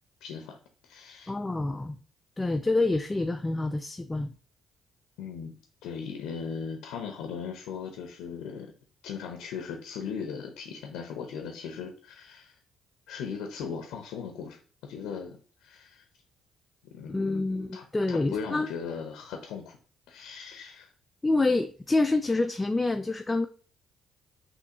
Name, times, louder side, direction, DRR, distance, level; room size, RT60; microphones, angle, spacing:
voice 1, 0.2-0.6 0.8-1.3 5.2-5.6 5.8-8.7 9.0-12.5 13.1-16.0 16.8-17.4 17.7-19.8 20.1-20.9, left 6 dB, 70° left, 4 dB, 0.6 m, -38 dB
voice 2, 1.3-2.0 2.4-4.3 17.1-18.7 21.2-23.5, left 2 dB, 20° left, 7 dB, 0.4 m, -27 dB
5.8 x 2.8 x 2.8 m, 0.40 s
hypercardioid pair, 45°, 0 cm